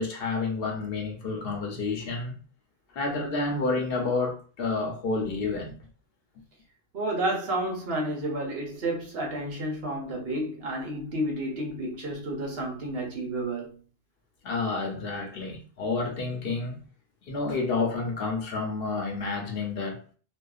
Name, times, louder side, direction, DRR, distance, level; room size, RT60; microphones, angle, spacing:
voice 1, 0.0-2.3 2.9-5.8 14.4-16.8 17.3-20.0, left 3 dB, 65° left, 0.8 m, -29 dB
voice 2, 6.9-13.8, right 1 dB, 70° right, 1.1 m, -31 dB
2.6 x 2.3 x 2.3 m
omnidirectional pair, 1.1 m